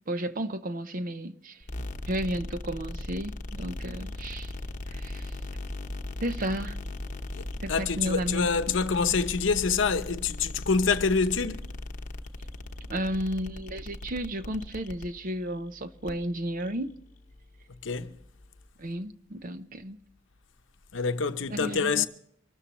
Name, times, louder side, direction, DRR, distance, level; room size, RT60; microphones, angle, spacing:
voice 1, 0.1-1.6 2.1-4.5 4.9-5.3 6.2-6.8 7.6-8.8 12.9-16.9 18.8-20.0 21.5-22.1, right 1 dB, 45° right, 0.7 m, -33 dB
sound 1, 1.6-18.7, left 2 dB, 40° left, 0.9 m, -39 dB
voice 2, 7.4-11.6 17.8-18.1 20.9-22.1, left 5 dB, 75° left, 0.8 m, -26 dB
24.5 x 13.0 x 3.1 m
head